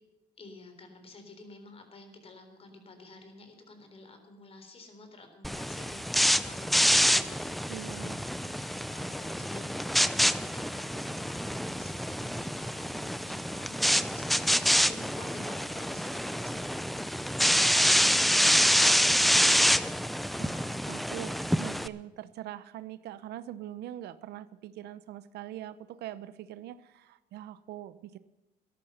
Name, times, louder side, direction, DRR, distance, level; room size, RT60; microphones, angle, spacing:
voice 1, 0.4-20.1, left 2 dB, 35° left, 6 dB, 3.8 m, -50 dB
sound 1, 5.4-21.9, equal, ahead, 0.6 m, -27 dB
voice 2, 7.7-8.2 20.4-28.2, right 13 dB, 75° right, 15 dB, 0.8 m, -43 dB
13.5 x 11.5 x 6.7 m, 1.0 s
cardioid pair, 110°, 17 cm